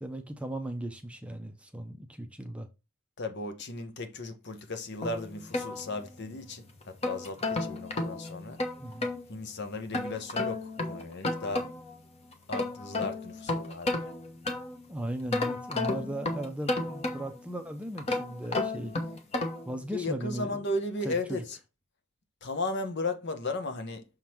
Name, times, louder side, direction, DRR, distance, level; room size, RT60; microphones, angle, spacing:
voice 1, 0.0-2.7 8.8-9.1 14.9-18.9 19.7-20.6 21.0-21.4, right 1 dB, 5° right, 0.7 m, -37 dB
voice 2, 3.2-8.6 9.3-11.7 12.5-14.1 19.9-21.6 22.4-24.0, left 2 dB, 50° left, 1.0 m, -35 dB
sound 1, 5.0-6.4 6.8-9.2 9.9-12.0 12.3-14.9 15.3-17.5 18.0-19.7, left 2 dB, 30° left, 1.1 m, -33 dB
6.4 x 3.8 x 4.5 m
head